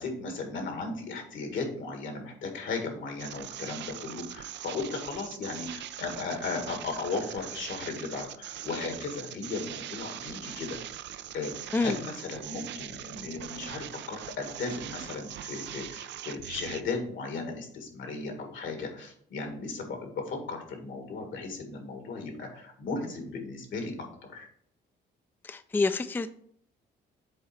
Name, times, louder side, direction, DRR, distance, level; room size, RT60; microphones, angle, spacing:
voice 1, 0.0-10.8 11.3-24.5, left 3 dB, 70° left, 4 dB, 1.9 m, -36 dB
sound 1, 3.2-16.8, right 11 dB, 65° right, 0.4 m, -41 dB
voice 2, 25.4-26.3, left 3 dB, 10° left, 12 dB, 0.4 m, -27 dB
7.8 x 3.9 x 4.4 m, 0.63 s
cardioid pair, 90°, 20 cm